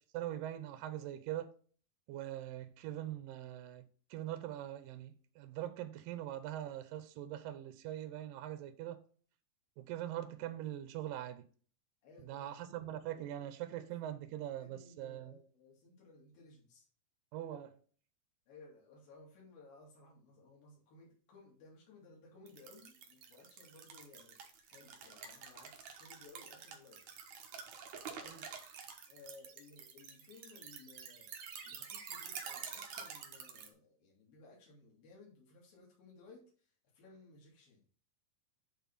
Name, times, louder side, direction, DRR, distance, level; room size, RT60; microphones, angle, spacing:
voice 1, 0.1-1.6 2.1-3.8 4.1-9.0 9.8-11.5 12.2-15.4 17.3-17.8 28.2-28.5, right 12 dB, 80° right, 2.5 m, -42 dB
voice 2, 12.0-13.3 14.6-16.9 18.5-24.4 24.7-27.0 29.1-37.8, left 3 dB, 85° left, 4.3 m, -59 dB
sound 1, 22.5-33.7, right 7 dB, 60° right, 2.4 m, -48 dB
9.3 x 3.8 x 5.5 m
omnidirectional pair, 4.0 m